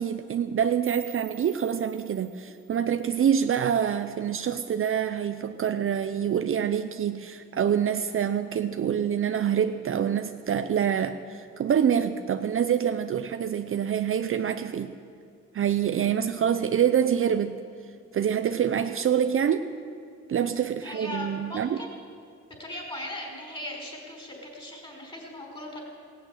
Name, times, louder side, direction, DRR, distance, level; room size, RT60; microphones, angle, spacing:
voice 1, 0.0-14.9 15.5-17.5 18.1-19.7 20.3-21.8, right 8 dB, 45° right, 8 dB, 0.6 m, -26 dB
sound 1, 0.9-3.8, right 10 dB, 75° right, 1.8 m, -49 dB
voice 2, 20.8-21.9 22.6-25.8, left 1 dB, 20° left, 0 dB, 5.0 m, -38 dB
16.5 x 9.1 x 9.1 m, 2.3 s
cardioid pair, 95°, 29 cm